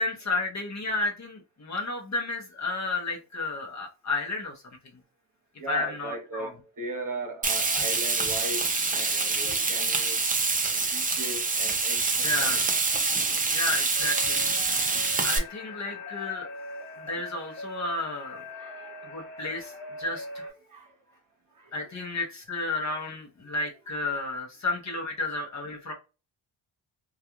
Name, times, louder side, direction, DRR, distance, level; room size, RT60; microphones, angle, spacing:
voice 1, 0.0-4.8 5.7-6.5 12.2-12.6 13.5-14.4 15.2-16.5 17.0-18.4 19.1-19.7 20.0-20.4 21.7-25.9, left 2 dB, 35° left, 0.8 m, -32 dB
voice 2, 5.6-10.2 10.6-12.6 18.5-19.1 20.7-20.9 21.6-21.7, right 2 dB, 40° right, 1.0 m, -38 dB
Frying (food), 7.4-15.4, right 3 dB, 20° right, 0.5 m, -26 dB
sound 1, 13.9-20.5, left 1 dB, 55° left, 1.1 m, -41 dB
2.4 x 2.3 x 2.9 m
cardioid pair, 100°, 48 cm